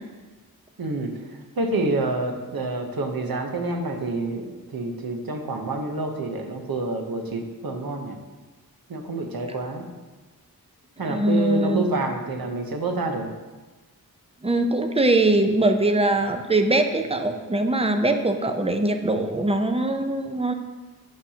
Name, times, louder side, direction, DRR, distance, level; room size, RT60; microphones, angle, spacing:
voice 1, 0.8-8.2 8.9-9.9 11.0-13.3, right 2 dB, 65° right, 4 dB, 1.0 m, -28 dB
voice 2, 11.1-11.8 14.4-20.5, right 2 dB, 15° right, 6 dB, 0.6 m, -22 dB
10.5 x 5.7 x 2.9 m, 1.2 s
wide cardioid pair, 80°, 38 cm